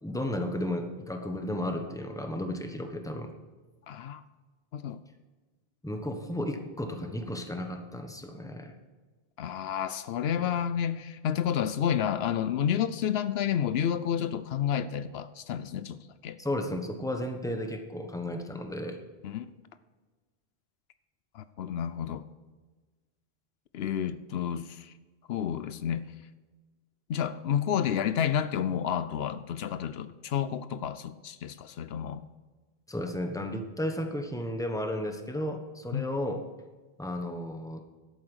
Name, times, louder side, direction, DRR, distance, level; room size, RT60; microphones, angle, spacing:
voice 1, 0.0-3.3 5.8-8.7 10.4-10.5 16.4-19.0 32.9-36.4 37.0-37.8, left 1 dB, 5° left, 5 dB, 1.1 m, -33 dB
voice 2, 3.9-4.2 4.7-5.0 9.4-16.4 19.2-19.5 21.3-22.2 23.7-24.9 25.3-26.1 27.1-32.2 35.9-36.1, left 9 dB, 75° left, 13 dB, 0.8 m, -30 dB
11.5 x 8.7 x 6.2 m, 1.3 s
omnidirectional pair, 1.1 m